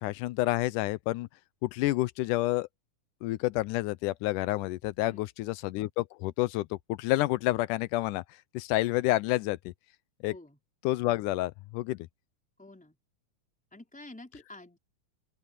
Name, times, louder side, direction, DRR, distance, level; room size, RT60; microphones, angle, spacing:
voice 1, 0.0-1.3 1.6-2.7 3.2-8.2 8.5-9.7 10.2-10.3 10.8-12.1, left 18 dB, 80° left, 2.1 m, -29 dB
voice 2, 12.6-13.0 13.7-14.8, left 2 dB, ahead, 4.2 m, -49 dB
open air
omnidirectional pair, 3.7 m